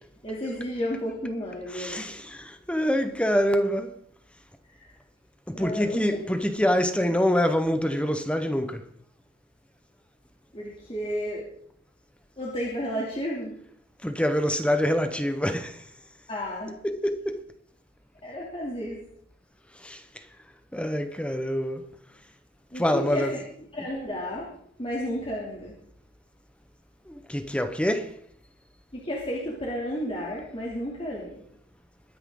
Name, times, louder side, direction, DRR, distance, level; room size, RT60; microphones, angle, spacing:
voice 1, 0.2-2.1 4.7-4.9 5.5-6.2 7.0-7.1 10.5-11.5 12.4-13.5 16.3-16.8 18.2-19.0 22.7-23.4 23.7-24.5 24.8-25.8 28.9-31.4, equal, 30° left, 2.9 m, -32 dB
voice 2, 1.7-3.9 5.5-8.8 14.0-15.8 16.8-17.4 19.8-20.0 20.7-21.8 22.7-23.3 27.1-28.1, equal, 5° left, 1.0 m, -25 dB
22.5 x 9.8 x 3.8 m
head